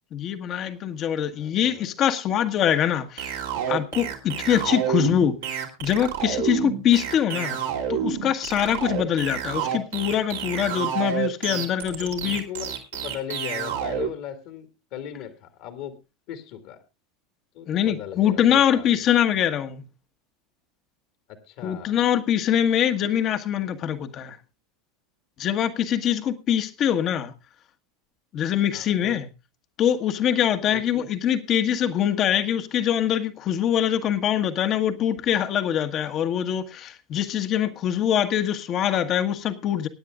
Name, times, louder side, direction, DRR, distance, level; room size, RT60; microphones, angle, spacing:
voice 1, 0.1-3.4 3.7-7.6 7.9-12.5 17.7-19.9 21.6-24.4 25.4-27.3 28.3-29.3 29.8-39.9, left 10 dB, 45° left, 9 dB, 1.4 m, -23 dB
voice 2, 1.4-1.9 11.9-16.0 16.3-16.8 17.5-19.0 21.3-22.0 28.7-29.2 30.7-31.1, left 10 dB, 60° left, 8 dB, 2.2 m, -38 dB
sound 1, 3.2-14.1, right 8 dB, 80° right, 2.7 m, -29 dB
23.0 x 9.6 x 2.5 m, 0.26 s
hypercardioid pair, 85°, 0 cm